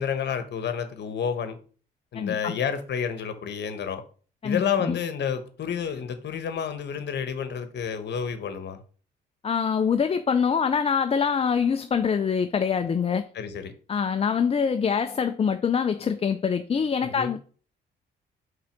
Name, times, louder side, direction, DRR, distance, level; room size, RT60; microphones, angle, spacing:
voice 1, 0.0-1.6 2.1-4.0 4.4-8.8 13.3-13.7 17.0-17.3, left 7 dB, 60° left, 1.2 m, -30 dB
voice 2, 2.1-2.5 4.4-5.0 9.4-13.3 13.9-17.4, left 6 dB, 30° left, 0.5 m, -24 dB
5.5 x 3.8 x 5.8 m
cardioid pair, 90°, 20 cm